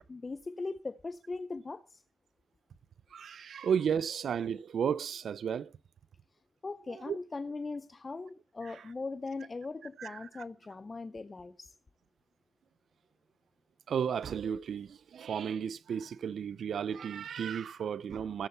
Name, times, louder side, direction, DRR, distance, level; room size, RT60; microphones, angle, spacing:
voice 1, 0.1-2.0 6.6-11.7, left 3 dB, 25° left, 0.5 m, -40 dB
voice 2, 3.1-5.7 7.1-7.2 10.0-10.1 13.9-18.5, right 7 dB, 70° right, 0.5 m, -33 dB
15.0 x 8.0 x 4.4 m
wide cardioid pair, 145°, 0 cm